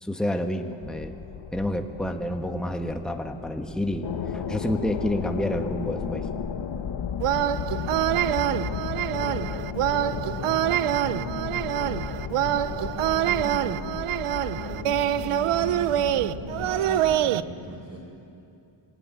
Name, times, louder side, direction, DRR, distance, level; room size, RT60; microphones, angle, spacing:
voice 1, 0.0-1.1 1.5-4.1 4.3-6.2, left 1 dB, ahead, 4 dB, 1.5 m, -29 dB
sound 1, 0.8-17.2, left 7 dB, 60° left, 1.5 m, -34 dB
sound 2, 7.2-17.4, right 12 dB, 90° right, 0.8 m, -25 dB
voice 2, 7.6-12.0 12.4-14.0 14.5-18.0, right 1 dB, 40° right, 0 dB, 4.9 m, -39 dB
26.0 x 22.5 x 9.6 m, 2.7 s
cardioid pair, 110°, 50 cm